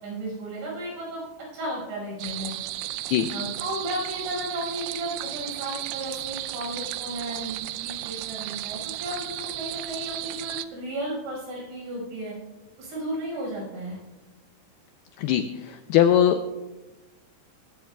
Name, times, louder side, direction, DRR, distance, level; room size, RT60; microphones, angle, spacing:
voice 1, 0.0-1.2 1.5-2.6 3.3-12.4 12.8-14.0, right 1 dB, 75° right, -3 dB, 7.6 m, -34 dB
sound 1, 2.2-10.7, right 16 dB, 90° right, 3.0 m, -34 dB
voice 2, 15.2-16.5, left 10 dB, 90° left, 8 dB, 2.2 m, -21 dB
21.0 x 15.5 x 2.3 m, 1.1 s
omnidirectional pair, 5.2 m